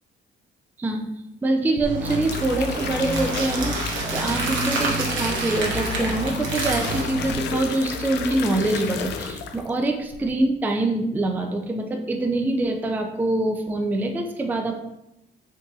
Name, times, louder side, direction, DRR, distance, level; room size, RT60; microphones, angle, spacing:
voice 1, 1.4-14.8, right 2 dB, 10° right, 3 dB, 0.3 m, -25 dB
sound 1, 1.8-9.8 10.1-10.4, left 6 dB, 60° left, 0.4 m, -33 dB
sound 2, 1.8-7.3, right 1 dB, 40° right, 0.7 m, -31 dB
sound 3, 2.0-7.0, right 3 dB, 70° right, 0.9 m, -30 dB
3.9 x 2.6 x 2.4 m, 0.86 s
cardioid pair, 90°, 20 cm